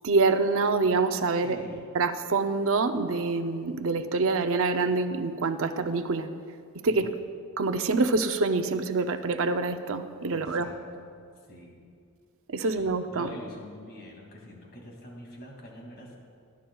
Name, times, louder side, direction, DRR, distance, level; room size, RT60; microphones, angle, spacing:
voice 1, 0.0-1.6 1.9-6.3 6.8-7.1 7.6-10.7 12.5-13.3, right 3 dB, 65° right, 8 dB, 0.6 m, -26 dB
voice 2, 1.4-1.9 6.9-7.3 10.3-11.2 11.5-11.8 12.6-12.8 13.1-16.2, equal, 45° left, -1 dB, 2.4 m, -45 dB
19.5 x 11.5 x 2.3 m, 2.2 s
head